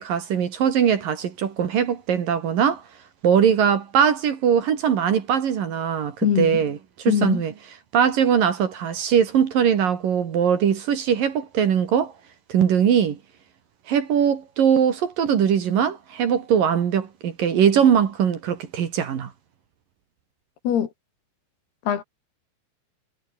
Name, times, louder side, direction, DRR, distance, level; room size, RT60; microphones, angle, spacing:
voice 1, 0.0-2.8 3.2-6.8 7.1-7.5 7.9-12.1 12.5-13.2 13.9-19.3, right 8 dB, 55° right, 3.6 m, -21 dB
voice 2, 6.2-6.6 7.1-7.4 20.6-20.9 21.9-22.0, left 9 dB, 65° left, 4.3 m, -22 dB
omnidirectional pair, 5.1 m